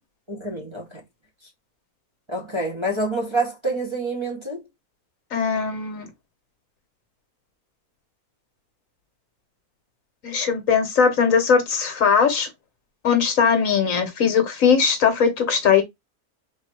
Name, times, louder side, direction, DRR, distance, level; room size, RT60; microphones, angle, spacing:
voice 1, 0.3-0.9 2.3-4.6, right 2 dB, 20° right, 0.9 m, -27 dB
voice 2, 5.3-6.0 10.2-12.5 13.0-15.8, left 6 dB, 60° left, 1.3 m, -19 dB
3.4 x 2.6 x 4.4 m
omnidirectional pair, 1.6 m